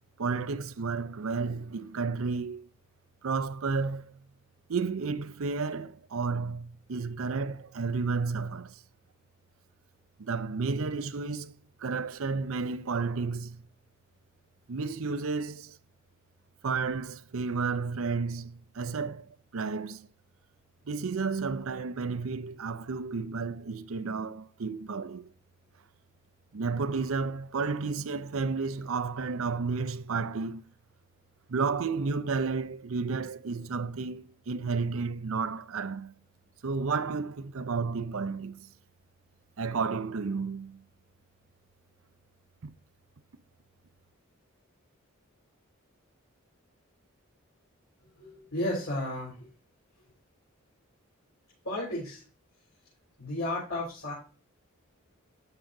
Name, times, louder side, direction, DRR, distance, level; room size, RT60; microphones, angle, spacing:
voice 1, 0.2-2.7 3.2-4.2 4.7-8.8 10.2-13.6 14.7-15.8 16.6-20.1 20.9-25.3 26.5-30.6 31.5-36.2 36.6-38.7 39.6-40.8 42.6-42.7, right 4 dB, 70° right, 0.5 m, -32 dB
voice 2, 48.2-49.5 51.6-52.2 53.2-54.1, left 1 dB, 80° left, 4.1 m, -33 dB
13.5 x 5.9 x 2.5 m
head